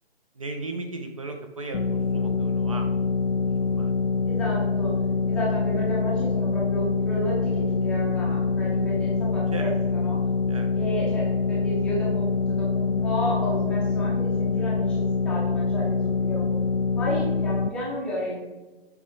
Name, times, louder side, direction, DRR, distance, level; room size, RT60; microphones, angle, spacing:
voice 1, 0.4-2.9 3.6-3.9 9.5-9.7 10.5-10.7, right 2 dB, 35° right, 5 dB, 0.6 m, -36 dB
sound 1, 1.7-17.7, left 4 dB, 85° left, 0.5 m, -25 dB
voice 2, 4.2-4.9 5.3-10.2 10.7-16.5 16.9-18.4, equal, 5° left, -7 dB, 0.7 m, -32 dB
7.3 x 4.7 x 4.8 m, 1.2 s
figure-of-eight pair, 140°, 31 cm